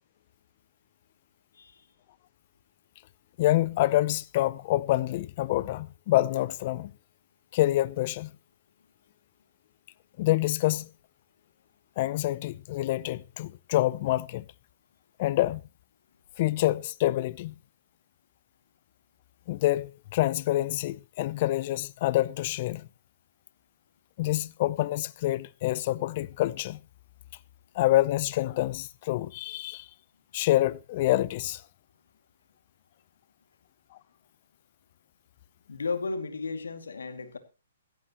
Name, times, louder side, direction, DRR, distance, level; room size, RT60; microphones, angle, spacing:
voice 1, 3.4-6.9 7.5-8.3 10.2-10.9 12.0-14.4 15.2-15.6 16.4-17.6 19.5-22.9 24.2-26.8 27.7-29.9 30.3-31.6, left 16 dB, 45° left, 0.6 m, -27 dB
voice 2, 35.7-37.4, left 4 dB, 85° left, 2.3 m, -34 dB
16.0 x 14.0 x 3.0 m
hypercardioid pair, 140°, 0 cm